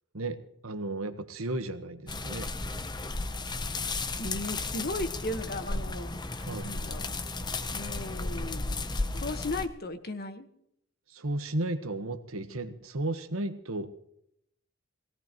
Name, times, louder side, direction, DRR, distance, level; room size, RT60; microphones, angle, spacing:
voice 1, 0.1-2.5 6.4-6.7 11.1-13.9, right 2 dB, 80° right, 9 dB, 1.3 m, -34 dB
sound 1, 2.1-9.7, left 3 dB, 20° left, 0.8 m, -34 dB
voice 2, 4.2-7.1 7.7-10.5, left 2 dB, 45° left, 8 dB, 1.3 m, -36 dB
20.0 x 17.5 x 3.0 m, 0.74 s
head